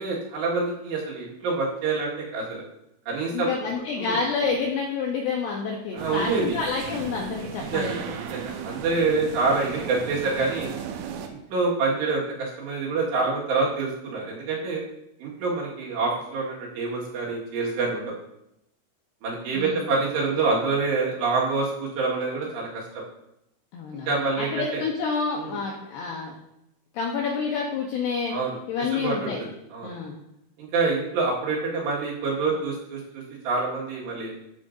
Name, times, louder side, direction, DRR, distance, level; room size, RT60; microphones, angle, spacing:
voice 1, 0.0-2.6 3.1-3.5 4.0-4.2 5.9-6.6 7.7-7.9 8.3-10.7 11.2-14.8 15.2-18.1 19.2-23.0 24.1-24.8 25.3-25.6 28.3-28.6 28.9-30.0 30.6-34.3, right 3 dB, 65° right, -4 dB, 3.5 m, -27 dB
voice 2, 3.3-8.0 19.5-19.8 23.7-26.3 26.9-28.4 28.7-29.4 29.8-30.2, left 5 dB, 85° left, 0 dB, 2.3 m, -28 dB
sound 1, 6.0-11.3, right 8 dB, 80° right, 3.1 m, -36 dB
13.5 x 7.7 x 2.6 m, 0.83 s
omnidirectional pair, 5.9 m